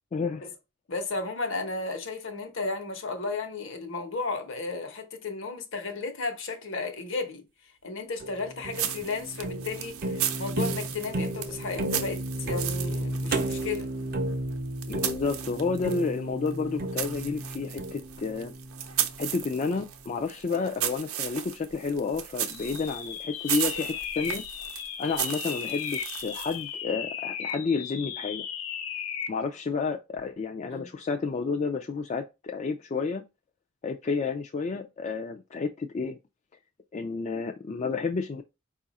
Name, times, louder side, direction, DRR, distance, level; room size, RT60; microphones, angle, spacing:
voice 1, 0.1-0.5 14.9-18.5 19.2-24.4 25.0-28.5 29.3-33.2 33.8-36.2 36.9-38.4, left 4 dB, 35° left, 0.3 m, -30 dB
voice 2, 0.9-7.5 7.8-13.9 30.7-30.9, left 3 dB, 65° left, 0.9 m, -34 dB
sound 1, 8.2-19.4, right 1 dB, 45° right, 0.5 m, -33 dB
sound 2, 8.7-16.1 16.4-26.7, right 10 dB, 85° right, 0.6 m, -36 dB
sound 3, 22.5-29.4, left 8 dB, 85° left, 0.6 m, -36 dB
4.7 x 2.4 x 4.0 m
head